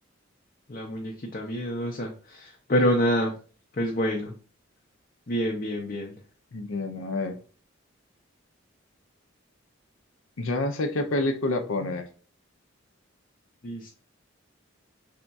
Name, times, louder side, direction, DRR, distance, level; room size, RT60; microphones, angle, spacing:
voice 1, 0.7-3.3 3.7-4.3 5.3-6.2 13.6-13.9, equal, 45° left, -1 dB, 0.6 m, -27 dB
voice 2, 6.5-7.4 10.4-12.1, left 2 dB, 85° left, 6 dB, 0.6 m, -28 dB
3.5 x 2.3 x 4.0 m, 0.38 s
head